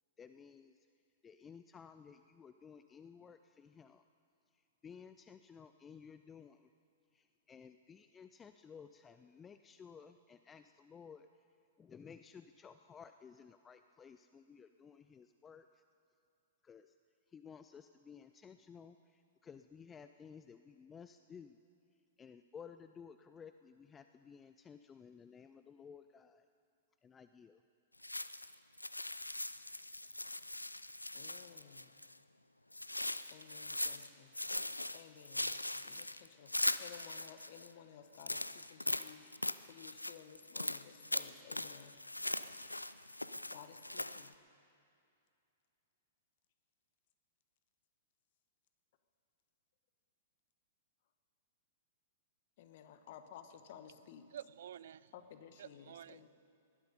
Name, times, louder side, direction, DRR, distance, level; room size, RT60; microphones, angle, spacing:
voice 1, 0.2-0.9 1.2-4.0 4.5-6.7 7.1-11.4 11.8-15.8 16.6-16.9 17.3-21.6 22.2-26.5 27.0-27.6, left 6 dB, 15° left, 10 dB, 0.4 m, -56 dB
sound 1, 28.0-32.2 32.7-34.1 34.3-37.7 38.1-44.3, left 1 dB, 90° left, 0.4 m, -40 dB
voice 2, 31.1-31.9 33.3-34.3 34.9-39.2 39.7-42.0 43.5-44.3 52.6-54.3 55.1-56.3, left 9 dB, 50° left, 9 dB, 1.2 m, -56 dB
voice 3, 54.3-55.1 55.6-56.3, right 10 dB, 60° right, 19 dB, 0.3 m, -50 dB
19.5 x 12.0 x 5.3 m, 2.6 s
figure-of-eight pair, 105°, 0 cm